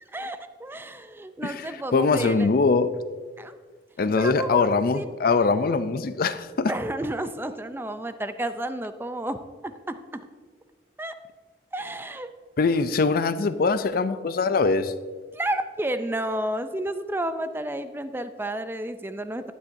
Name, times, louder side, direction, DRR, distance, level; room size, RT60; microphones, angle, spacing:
voice 1, 0.1-2.5 3.4-3.6 4.2-4.7 4.9-5.1 6.6-10.2 11.0-11.1 11.7-12.3 15.3-19.5, right 1 dB, 15° right, 10 dB, 0.4 m, -31 dB
voice 2, 1.4-2.9 4.0-6.8 12.6-14.9, left 4 dB, 55° left, 12 dB, 0.5 m, -22 dB
12.0 x 9.8 x 2.7 m, 1.5 s
head